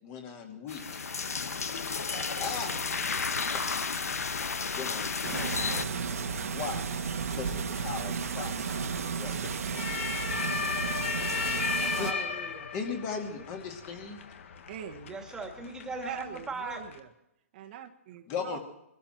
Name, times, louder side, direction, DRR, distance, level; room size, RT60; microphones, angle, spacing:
voice 1, 0.0-1.0 2.1-2.7 3.5-3.6 4.7-5.6 6.5-6.9 7.3-8.7 9.1-10.1 12.0-12.1 12.7-14.2 18.3-18.6, left 5 dB, 30° left, 3 dB, 2.4 m, -38 dB
sound 1, 0.7-5.9, left 5 dB, 90° left, 1.1 m, -32 dB
sound 2, 5.2-12.1, right 6 dB, 80° right, 1.6 m, -33 dB
sound 3, 5.7-17.0, left 6 dB, 60° left, 1.7 m, -37 dB
voice 2, 11.8-12.7 13.3-13.4 15.1-16.8, right 3 dB, 10° right, 4 dB, 2.1 m, -39 dB
voice 3, 14.7-15.2 16.0-17.1 17.5-18.6, right 9 dB, 45° right, 4 dB, 1.3 m, -42 dB
22.5 x 13.5 x 4.5 m, 0.85 s
hypercardioid pair, 145°, 8 cm